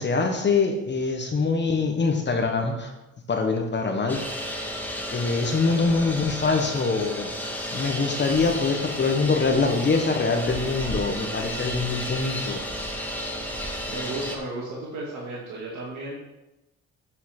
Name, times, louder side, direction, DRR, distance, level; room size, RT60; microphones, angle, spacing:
voice 1, 0.0-2.9 3.3-4.2 4.5-4.7 5.1-7.3 7.7-12.6 13.2-13.3, left 4 dB, 35° left, 4 dB, 1.2 m, -24 dB
sound 1, 4.1-14.4, equal, 5° left, 1.6 m, -32 dB
voice 2, 13.9-16.1, right 2 dB, 70° right, -5 dB, 2.2 m, -34 dB
8.2 x 5.7 x 6.0 m, 1.0 s
cardioid pair, 90°, 30 cm